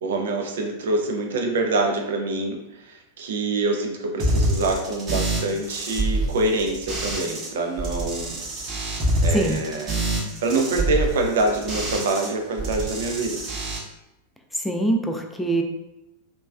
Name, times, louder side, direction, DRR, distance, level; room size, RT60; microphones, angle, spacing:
voice 1, 0.0-9.0 9.2-10.0 10.4-13.4, right 2 dB, 60° right, 3 dB, 0.4 m, -25 dB
sound 1, 4.2-7.5 7.8-12.3 12.6-13.8, right 1 dB, 35° right, 0.8 m, -26 dB
voice 2, 14.6-15.6, right 1 dB, 5° left, 3 dB, 0.3 m, -23 dB
3.0 x 2.2 x 2.3 m, 0.93 s
figure-of-eight pair, 90°, 0 cm